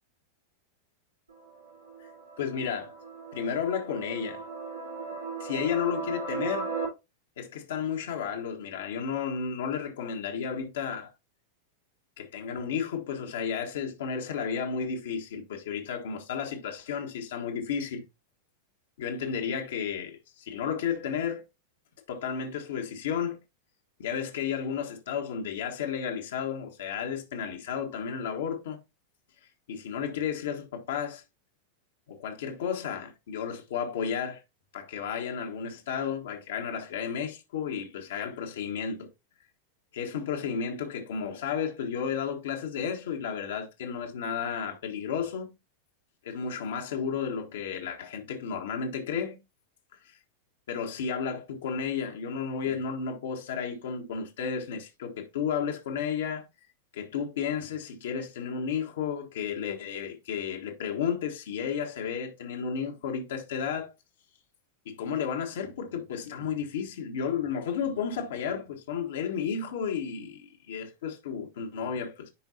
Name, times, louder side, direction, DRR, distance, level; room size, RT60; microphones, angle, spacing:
sound 1, 1.3-6.9, right 4 dB, 80° right, 3.1 m, -37 dB
voice 1, 2.4-2.9 3.3-4.4 5.4-6.7 7.4-11.1 12.2-18.0 19.0-21.5 22.1-23.4 24.0-28.8 29.7-31.2 32.1-34.4 34.7-39.1 39.9-45.5 46.2-49.4 50.0-50.2 50.7-56.4 56.9-63.9 64.8-72.3, left 7 dB, 60° left, 1.4 m, -32 dB
10.0 x 4.6 x 2.8 m
figure-of-eight pair, 90°, 0 cm